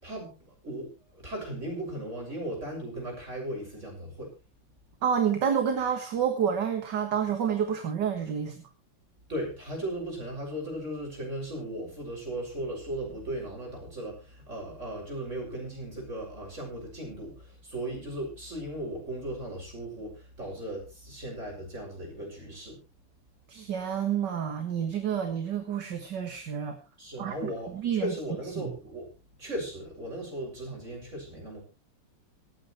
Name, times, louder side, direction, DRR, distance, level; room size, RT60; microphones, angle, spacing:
voice 1, 0.0-4.3 9.3-22.8 27.0-29.1 29.4-31.6, right 1 dB, 30° right, 0 dB, 7.0 m, -37 dB
voice 2, 5.0-8.7 23.5-26.8 27.2-28.1 28.6-28.7, right 8 dB, 55° right, 5 dB, 2.1 m, -29 dB
26.5 x 9.0 x 3.2 m, 0.29 s
omnidirectional pair, 2.4 m